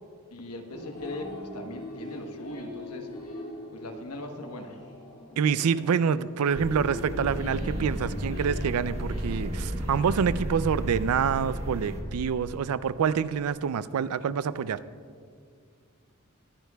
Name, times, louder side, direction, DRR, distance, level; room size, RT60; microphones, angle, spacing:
voice 1, 0.3-3.1 3.7-4.8, left 2 dB, 85° left, 5 dB, 1.1 m, -39 dB
sound 1, 0.7-11.3, left 1 dB, 65° left, 2.1 m, -42 dB
voice 2, 5.4-14.8, right 7 dB, 75° right, 16 dB, 0.4 m, -27 dB
sound 2, 6.5-12.0, equal, 30° right, 1.3 m, -33 dB
22.0 x 9.6 x 2.3 m, 2.1 s
head